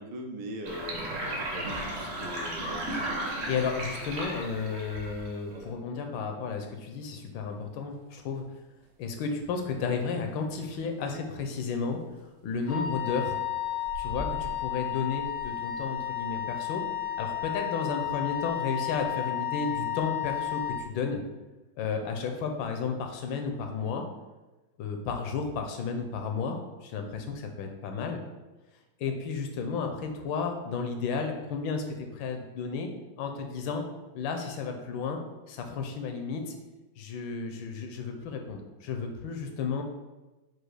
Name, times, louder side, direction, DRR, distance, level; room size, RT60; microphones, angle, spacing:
voice 1, 0.0-3.0, equal, 75° right, 2 dB, 1.2 m, -41 dB
Sink (filling or washing), 0.6-5.6, right 1 dB, 50° right, 0.8 m, -35 dB
voice 2, 3.3-8.4 9.0-12.0 12.4-13.4 13.9-16.8 17.2-21.2 21.8-24.0 24.8-28.2 29.0-32.9 33.2-33.8 34.1-35.2 35.5-36.5 37.0-39.8, left 5 dB, 85° left, 4 dB, 1.3 m, -33 dB
sound 1, 5.5-16.3, equal, 90° right, 1.5 m, -48 dB
Wind instrument woodwind instrument, 12.7-20.9, left 13 dB, 70° left, 0.5 m, -32 dB
4.8 x 2.4 x 4.6 m, 1.1 s
omnidirectional pair, 2.1 m